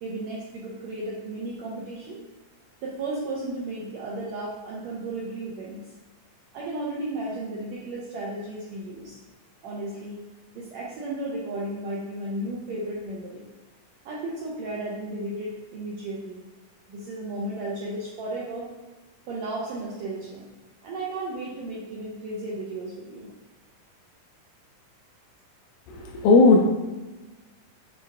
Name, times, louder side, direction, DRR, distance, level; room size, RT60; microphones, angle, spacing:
voice 1, 0.0-2.2 2.8-5.9 6.5-9.2 9.6-10.3 10.5-13.5 14.0-16.4 16.9-18.7 19.3-20.5 20.8-23.3, right 2 dB, 85° right, -4 dB, 1.6 m, -34 dB
voice 2, 25.9-26.6, left 3 dB, 80° left, 0 dB, 2.0 m, -16 dB
6.5 x 3.3 x 2.3 m, 1.2 s
omnidirectional pair, 3.8 m